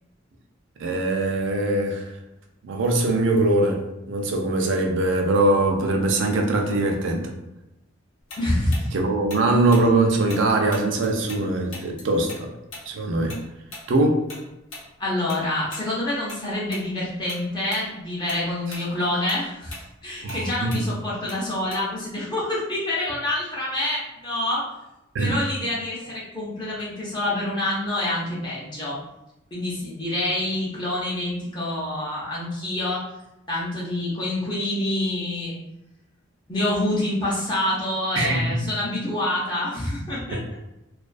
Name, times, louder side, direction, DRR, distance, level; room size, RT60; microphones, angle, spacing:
voice 1, 0.8-2.1 2.6-7.3 8.9-12.5 12.9-13.4 13.9-14.3 20.2-20.8 25.1-25.3 38.2-38.6, right 2 dB, 70° right, 2 dB, 0.4 m, -22 dB
Tick-tock, 8.3-11.4 11.7-16.4 16.7-16.9 17.3-17.9 18.2-22.1, left 2 dB, 90° left, 0.8 m, -41 dB
voice 2, 8.4-8.9 15.0-24.7 25.2-29.0 29.5-33.0 33.5-35.6 36.5-40.4, left 1 dB, 25° left, -6 dB, 0.5 m, -27 dB
2.3 x 2.3 x 2.4 m, 0.92 s
head